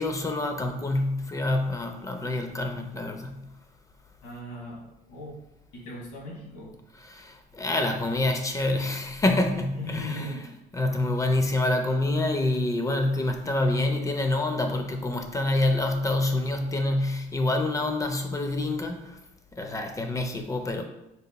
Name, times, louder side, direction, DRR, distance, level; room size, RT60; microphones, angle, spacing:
voice 1, 0.0-3.4 7.1-10.3 10.7-19.2 19.5-20.8, left 2 dB, 20° left, 5 dB, 0.3 m, -27 dB
voice 2, 4.2-5.4 5.7-6.8 9.7-10.5, left 1 dB, 90° left, -2 dB, 1.2 m, -38 dB
4.0 x 2.8 x 2.2 m, 0.88 s
cardioid pair, 110°, 17 cm